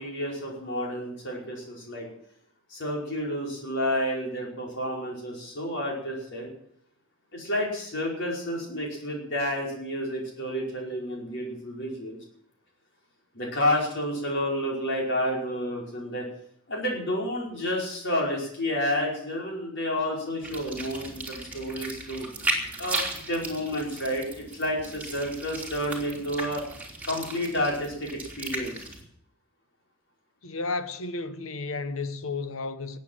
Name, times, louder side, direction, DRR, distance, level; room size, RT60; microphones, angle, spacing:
voice 1, 0.0-2.1 2.7-6.5 7.3-12.2 13.3-16.2 16.7-22.3 22.8-26.6 27.0-28.8, left 1 dB, 60° left, 5.2 m, -30 dB
sound 1, 20.4-29.0, right 2 dB, 10° right, 3.6 m, -36 dB
voice 2, 30.4-33.0, left 3 dB, 85° left, 1.2 m, -32 dB
18.5 x 8.4 x 7.7 m
head